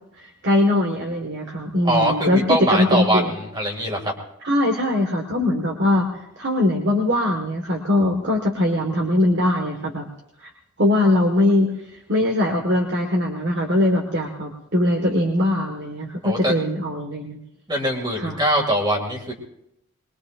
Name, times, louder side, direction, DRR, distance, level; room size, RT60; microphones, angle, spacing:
voice 1, 0.2-3.3 4.4-10.0 10.4-10.5 10.8-11.7 12.1-17.4 18.2-18.4, left 1 dB, 50° right, 2 dB, 1.6 m, -21 dB
voice 2, 1.8-4.1 16.2-16.5 17.7-19.3, right 1 dB, 20° right, 2 dB, 2.3 m, -22 dB
22.0 x 21.5 x 2.6 m, 0.80 s
head